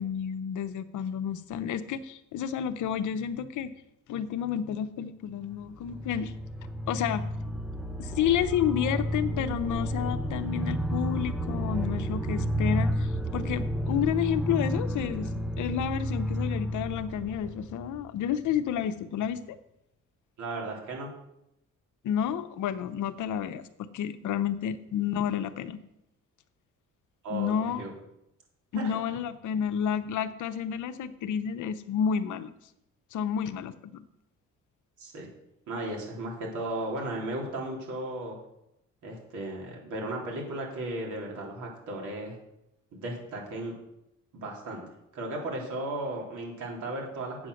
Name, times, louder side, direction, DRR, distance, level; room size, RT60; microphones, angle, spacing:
voice 1, 0.0-3.7 4.1-6.3 6.9-7.2 8.0-19.6 22.0-23.7 23.9-25.8 27.3-27.9 28.7-32.5 33.1-34.0, left 9 dB, 75° left, 11 dB, 0.9 m, -30 dB
sound 1, 5.5-18.3, equal, 5° right, 0.7 m, -31 dB
voice 2, 20.4-21.1 27.2-27.9 28.7-28.9 35.0-35.3 35.7-38.4 39.0-42.4 42.9-43.7 44.3-44.8 45.1-47.5, right 1 dB, 75° right, -1 dB, 3.6 m, -35 dB
8.6 x 7.3 x 6.5 m, 0.83 s
cardioid pair, 90°, 30 cm